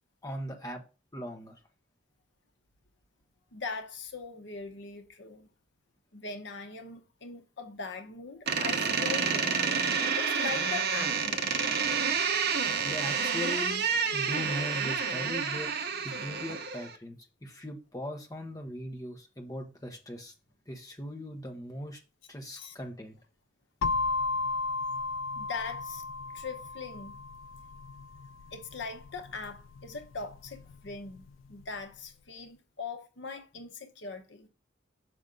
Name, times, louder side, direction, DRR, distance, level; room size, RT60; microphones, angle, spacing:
voice 1, 0.2-0.8 1.1-1.6 12.8-13.8 14.1-15.7 16.0-20.3 20.7-22.0 22.3-23.2, equal, 20° left, 1.0 m, -39 dB
voice 2, 3.5-5.5 6.1-9.6 10.2-11.5 22.5-22.8 25.4-26.0 26.3-27.1 28.5-34.5, left 4 dB, 65° left, 0.9 m, -41 dB
Door, 8.5-17.0, right 6 dB, 50° right, 0.8 m, -29 dB
sound 1, 23.8-31.6, left 3 dB, 85° left, 0.3 m, -35 dB
6.1 x 5.2 x 3.8 m
head